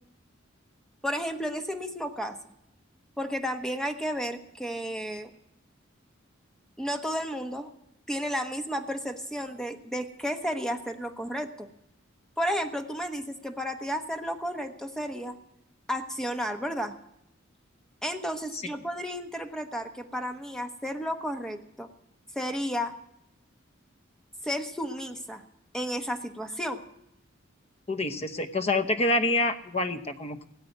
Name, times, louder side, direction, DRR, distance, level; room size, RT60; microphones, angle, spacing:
voice 1, 1.0-2.4 3.2-5.3 6.8-7.7 8.1-11.7 12.4-15.3 15.9-16.9 18.0-21.9 22.3-22.9 24.4-25.4 25.7-26.8, equal, 5° left, 5 dB, 1.0 m, -32 dB
voice 2, 27.9-30.5, left 2 dB, 35° left, 9 dB, 0.9 m, -27 dB
17.5 x 6.6 x 9.3 m, 0.82 s
head